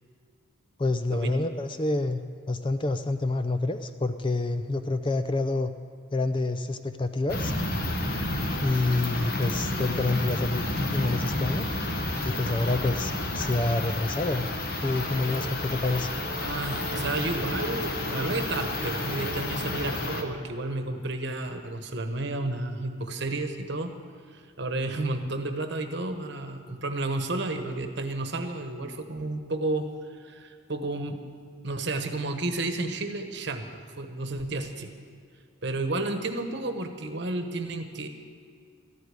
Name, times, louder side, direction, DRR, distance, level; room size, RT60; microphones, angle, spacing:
voice 1, 0.8-2.2 2.5-5.7 6.1-7.5 8.6-11.7 12.2-14.5 14.8-16.1, left 2 dB, 25° left, 9 dB, 0.4 m, -27 dB
sound 1, 7.3-20.2, left 2 dB, 45° left, 1.2 m, -30 dB
sound 2, 15.1-20.7, right 2 dB, 30° right, 1.3 m, -43 dB
voice 2, 16.4-23.9 24.3-29.9 30.2-31.2 31.6-33.7 34.0-34.9 35.6-38.1, right 2 dB, 55° right, 7 dB, 1.1 m, -31 dB
14.0 x 8.3 x 9.5 m, 2.1 s
head